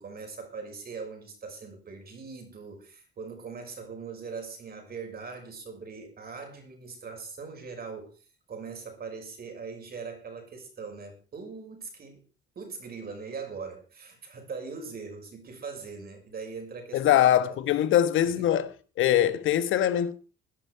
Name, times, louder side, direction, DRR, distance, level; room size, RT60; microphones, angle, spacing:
voice 1, 0.0-12.2 12.6-17.2 17.5-17.6 18.3-18.5, right 5 dB, 50° right, 6.2 m, -41 dB
voice 2, 16.9-18.7 19.0-20.1, left 11 dB, 80° left, 1.5 m, -22 dB
17.0 x 11.0 x 4.8 m
cardioid pair, 90°, 20 cm